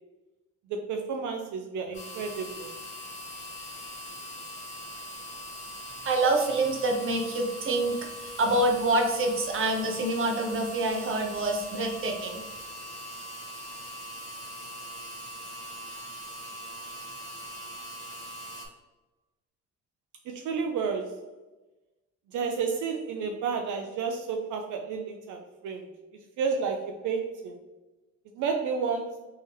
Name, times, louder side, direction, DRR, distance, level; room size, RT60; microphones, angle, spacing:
voice 1, 0.7-2.7 20.3-21.2 22.3-25.9 26.4-27.6 28.4-29.2, right 5 dB, 80° right, 3 dB, 0.5 m, -31 dB
sound 1, 1.9-18.7, equal, 25° left, 1.3 m, -41 dB
voice 2, 6.0-12.4, right 2 dB, 45° right, 2 dB, 0.9 m, -26 dB
3.5 x 3.4 x 2.8 m, 1.1 s
cardioid pair, 90°, 30 cm